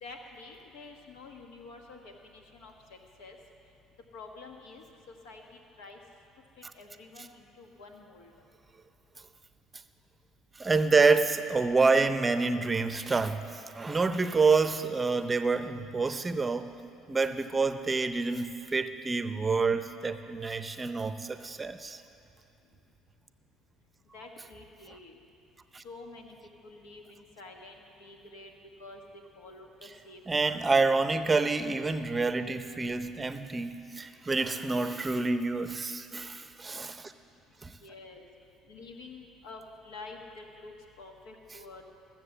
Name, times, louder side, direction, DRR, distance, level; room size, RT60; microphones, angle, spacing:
voice 1, 0.0-3.4 4.1-4.8 5.2-5.4 5.8-6.0 6.7-8.3 24.1-25.2 25.8-26.3 26.6-28.5 28.8-29.0 29.4-30.6 37.8-38.2 38.7-41.8, left 3 dB, 90° left, 3 dB, 1.4 m, -48 dB
voice 2, 10.6-16.7 17.1-22.0 25.7-25.8 30.3-37.1 37.6-37.7, right 4 dB, 25° right, 11 dB, 0.6 m, -27 dB
14.5 x 7.3 x 7.1 m, 2.6 s
supercardioid pair, 90°, 0 cm